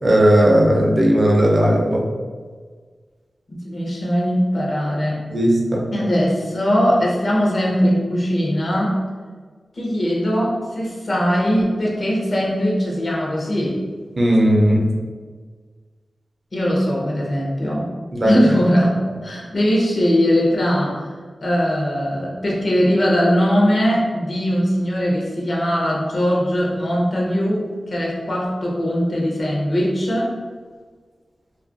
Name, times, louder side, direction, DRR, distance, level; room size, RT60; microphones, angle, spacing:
voice 1, 0.0-2.0 5.3-5.9 14.2-14.9 18.1-18.4, equal, 50° right, -2 dB, 0.5 m, -16 dB
voice 2, 3.5-5.2 5.9-9.0 9.7-13.8 16.5-17.9 18.2-19.0 19.2-21.0 21.4-30.3, equal, 55° left, -4 dB, 0.7 m, -20 dB
2.3 x 2.2 x 2.5 m, 1.5 s
wide cardioid pair, 65°, 0 cm